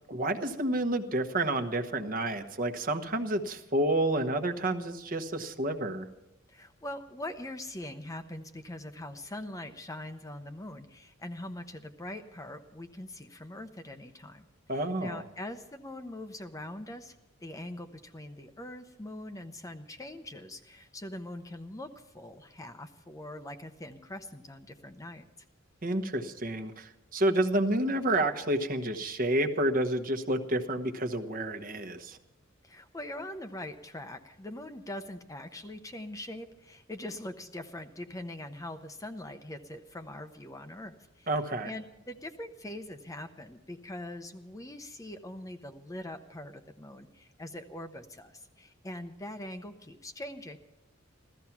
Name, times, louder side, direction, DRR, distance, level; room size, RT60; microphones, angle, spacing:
voice 1, 0.1-6.1 14.7-15.2 25.8-32.2 41.3-41.7, right 1 dB, 45° right, 7 dB, 1.1 m, -29 dB
voice 2, 6.5-14.4 14.7-17.2 17.4-25.2 32.6-41.3 41.6-50.6, left 1 dB, 15° left, 7 dB, 0.7 m, -42 dB
15.5 x 14.0 x 5.9 m, 0.97 s
head